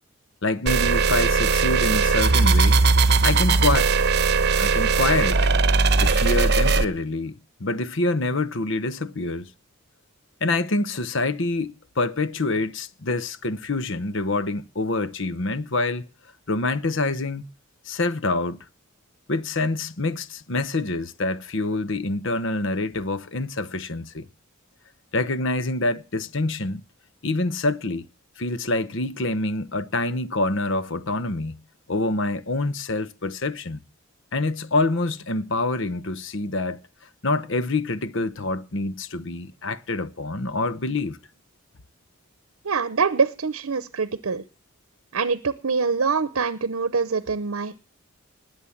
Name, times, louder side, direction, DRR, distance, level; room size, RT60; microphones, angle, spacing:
voice 1, 0.4-2.8 3.2-3.9 4.6-5.5 6.0-9.5 10.4-16.0 16.5-17.5 17.9-18.6 19.3-24.3 25.1-26.8 27.2-28.0 28.4-31.6 31.9-33.8 34.3-36.8 37.2-41.2, left 2 dB, 60° left, 1.0 m, -26 dB
sound 1, 0.7-6.8, right 4 dB, 50° right, 1.0 m, -19 dB
voice 2, 42.6-44.4 45.1-47.8, right 5 dB, 80° right, 0.8 m, -24 dB
20.0 x 8.3 x 7.2 m
head